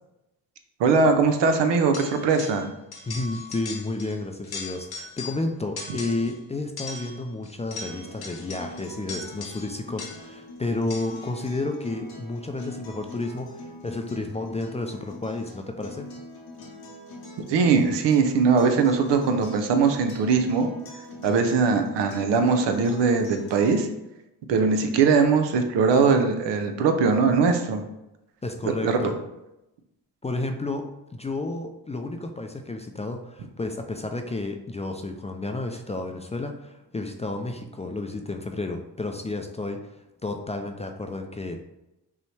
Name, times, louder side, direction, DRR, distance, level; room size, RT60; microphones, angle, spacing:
voice 1, 0.8-2.7 17.5-20.7 21.2-23.9 24.5-27.8 28.8-29.0, right 5 dB, 85° right, 6 dB, 0.6 m, -21 dB
sound 1, 1.9-2.7 2.9-4.2 4.4-5.5 5.8-6.4 6.8-10.4 10.9-11.3, left 4 dB, 60° left, 0.9 m, -39 dB
voice 2, 3.1-16.1 28.4-29.2 30.2-30.9 31.1-41.6, left 2 dB, 15° left, 4 dB, 0.3 m, -31 dB
Acoustic guitar, 7.9-23.9, left 1 dB, 90° left, 1.0 m, -43 dB
5.4 x 2.1 x 3.2 m, 0.92 s
cardioid pair, 70°, 42 cm